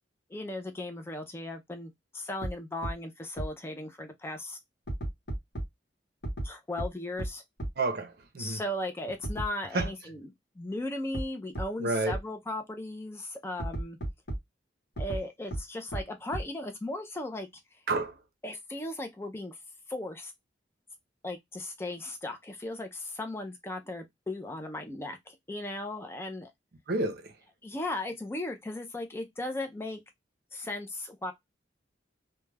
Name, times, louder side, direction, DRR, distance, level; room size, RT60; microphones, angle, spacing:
voice 1, 0.3-4.6 6.4-7.4 8.4-14.0 15.0-17.5 18.4-19.6 19.9-20.3 21.2-26.5 27.6-30.0 30.5-31.3, left 1 dB, 15° left, 0.4 m, -37 dB
sound 1, 2.4-2.5 2.8-2.9 3.4-3.5 4.9-5.6 6.2-6.5 6.8-6.9 7.2-7.3 7.6-7.7 9.2-9.5 9.8-9.9 11.1-11.2 11.5-11.6 12.1-12.2 13.6-14.4 15.0-15.2 15.5-15.6 15.9-16.0 16.3-16.4, right 1 dB, 60° left, 1.0 m, -32 dB
voice 2, 7.8-8.6 9.7-9.9 11.8-12.2 17.9-18.1 26.9-27.3, right 2 dB, 55° right, 0.6 m, -30 dB
2.3 x 2.1 x 3.1 m
head